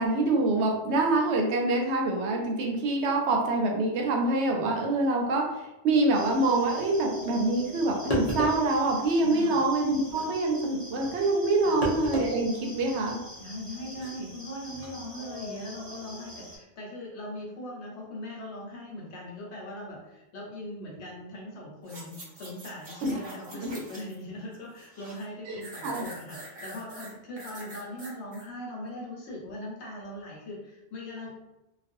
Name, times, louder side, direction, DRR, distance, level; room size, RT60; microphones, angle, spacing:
voice 1, 0.0-5.5 5.8-13.2 23.0-23.1 23.6-23.7 25.5-26.0, right 2 dB, 85° right, 1 dB, 0.9 m, -25 dB
sound 1, 6.1-16.6, left 1 dB, 20° right, 0.7 m, -45 dB
sound 2, 7.7-7.8 8.1-8.7 10.1-10.3 11.8-12.3 12.7-12.8 13.9-14.1, right 1 dB, 45° left, 0.6 m, -29 dB
voice 2, 9.2-9.6 11.6-11.8 13.4-31.3, left 1 dB, 90° left, -2 dB, 1.1 m, -40 dB
sound 3, 21.8-24.2 24.5-25.2 25.6-28.4 28.9-29.0, right 2 dB, 60° right, 1.0 m, -44 dB
2.4 x 2.3 x 2.6 m, 0.92 s
omnidirectional pair, 1.1 m